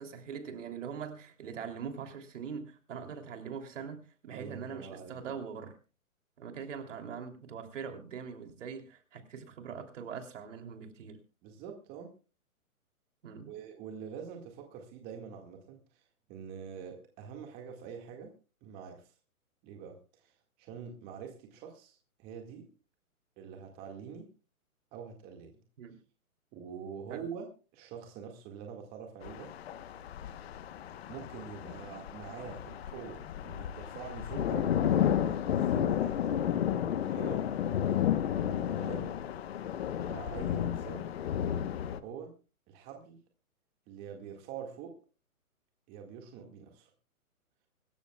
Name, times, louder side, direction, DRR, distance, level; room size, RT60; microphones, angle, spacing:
voice 1, 0.0-5.8 6.4-11.2 13.2-13.5 25.8-26.0 27.1-27.2, right 6 dB, 55° right, 6 dB, 3.1 m, -42 dB
voice 2, 4.3-5.3 11.4-12.1 13.5-16.0 16.3-18.3 18.6-19.1 19.6-22.7 23.4-24.3 24.9-25.6 26.5-27.5 27.7-29.5 31.1-34.8 35.0-36.5 36.9-37.5 37.8-38.2 38.7-39.1 40.0-41.1 42.0-42.3 42.7-43.2 43.9-45.0 45.9-46.9, right 7 dB, 20° right, 3 dB, 1.9 m, -45 dB
sound 1, 29.2-42.0, left 10 dB, 45° left, 1.1 m, -32 dB
24.5 x 13.5 x 2.3 m, 0.34 s
hypercardioid pair, 150°, 43 cm